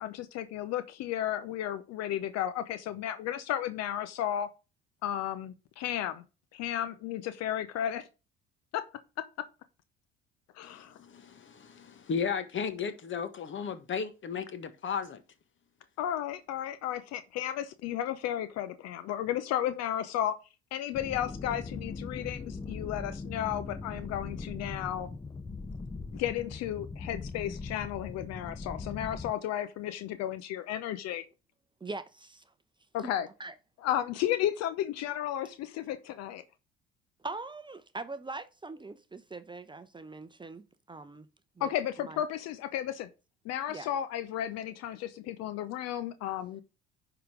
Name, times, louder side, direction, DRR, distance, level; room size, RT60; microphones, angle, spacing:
voice 1, 0.0-4.5 5.0-6.2 6.5-8.1 8.7-8.8 9.2-9.3 10.5-11.0 16.0-20.3 20.7-25.1 26.1-31.2 32.9-33.3 33.8-36.4 41.6-43.1 43.4-46.6, left 11 dB, 55° left, 0.8 m, -33 dB
voice 2, 10.6-15.2, left 6 dB, 40° left, 1.5 m, -35 dB
sound 1, 20.9-29.3, left 4 dB, 15° left, 0.7 m, -40 dB
voice 3, 31.8-32.4 33.0-33.1 33.4-33.5 37.2-41.3 41.6-41.7 42.0-42.2 43.7-43.9, right 3 dB, 15° right, 0.8 m, -42 dB
10.0 x 4.0 x 5.0 m
hypercardioid pair, 60°, 31 cm